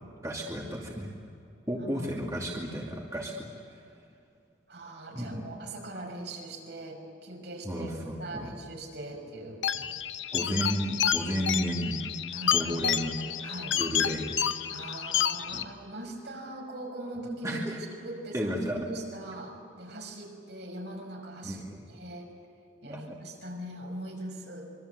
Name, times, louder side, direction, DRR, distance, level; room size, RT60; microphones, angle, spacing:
voice 1, 0.2-1.1 1.7-3.8 5.1-5.4 7.6-8.5 9.7-9.8 10.3-12.0 12.5-13.1 13.7-14.3 15.4-15.6 17.4-17.8 18.3-18.8 21.4-21.9 22.9-23.2, equal, 15° right, -2 dB, 2.5 m, -33 dB
voice 2, 1.8-2.1 4.7-9.6 12.3-12.7 13.2-13.8 14.7-21.6 21.9-22.3 22.8-24.7, right 1 dB, 65° right, 1 dB, 5.9 m, -41 dB
sound 1, 9.6-15.6, left 9 dB, 85° left, 1.0 m, -30 dB
26.0 x 23.5 x 8.2 m, 2.6 s
head